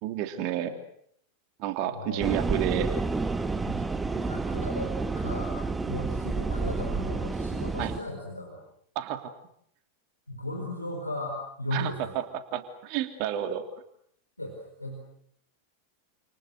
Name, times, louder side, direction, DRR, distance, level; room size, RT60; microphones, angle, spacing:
voice 1, 0.0-0.8 1.6-2.9 7.8-7.9 8.9-9.3 11.7-12.2 12.5-13.6, right 11 dB, 45° right, 8 dB, 3.0 m, -30 dB
voice 2, 1.8-2.6 3.6-8.6 10.3-12.2 14.4-15.1, left 1 dB, 85° left, 2 dB, 4.5 m, -37 dB
sound 1, 2.2-8.0, right 3 dB, 10° right, 1.3 m, -30 dB
29.5 x 28.5 x 6.6 m, 0.68 s
figure-of-eight pair, 90°, 0 cm